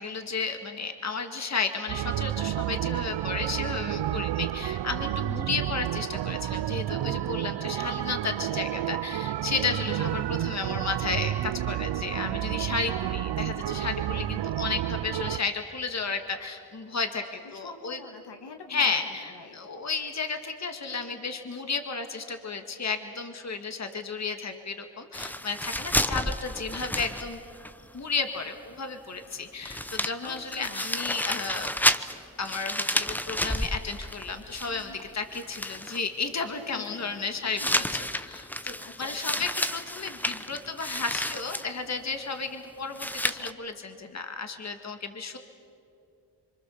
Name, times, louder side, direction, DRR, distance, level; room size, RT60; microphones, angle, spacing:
voice 1, 0.0-17.2 17.5-18.0 18.7-27.4 27.9-31.7 32.4-37.8 38.1-45.4, left 4 dB, 40° left, 6 dB, 1.9 m, -33 dB
sound 1, 1.9-15.4, right 13 dB, 75° right, 0.6 m, -30 dB
voice 2, 9.7-10.2 17.6-19.6 30.2-31.0 34.7-35.0 36.7-37.9 38.3-38.5 38.8-39.5, left 4 dB, 70° left, 4 dB, 2.3 m, -46 dB
sound 2, 25.1-27.7 28.0-28.1 29.3-29.4 29.6-35.0 35.3-36.0 37.6-41.7 42.9-43.5, left 1 dB, 5° left, 0.8 m, -31 dB
27.0 x 24.5 x 7.1 m, 2.5 s
cardioid pair, 85°, 42 cm